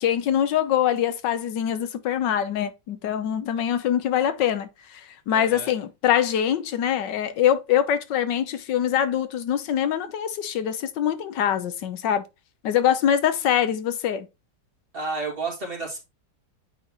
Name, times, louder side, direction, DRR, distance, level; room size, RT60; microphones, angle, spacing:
voice 1, 0.0-12.2 12.6-14.3, left 10 dB, 85° left, 1.5 m, -24 dB
voice 2, 5.3-5.7 14.9-16.0, right 3 dB, 30° right, 2.5 m, -31 dB
8.9 x 4.0 x 3.0 m
omnidirectional pair, 1.9 m